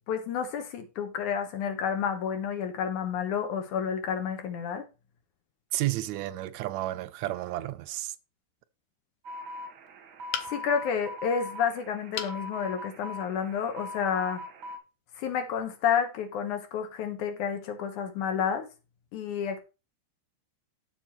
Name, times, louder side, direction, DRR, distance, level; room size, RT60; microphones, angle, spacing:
voice 1, 0.1-4.8 10.4-14.4 15.2-18.7 19.1-19.6, left 7 dB, 90° left, 2.8 m, -30 dB
voice 2, 5.7-8.1, right 15 dB, 80° right, 1.8 m, -32 dB
sound 1, 9.2-14.8, left 1 dB, 55° right, 1.2 m, -41 dB
sound 2, 10.3-10.9 12.1-12.4 13.0-13.1 13.4-13.5, left 10 dB, 70° left, 1.8 m, -35 dB
7.3 x 7.3 x 4.4 m
omnidirectional pair, 3.4 m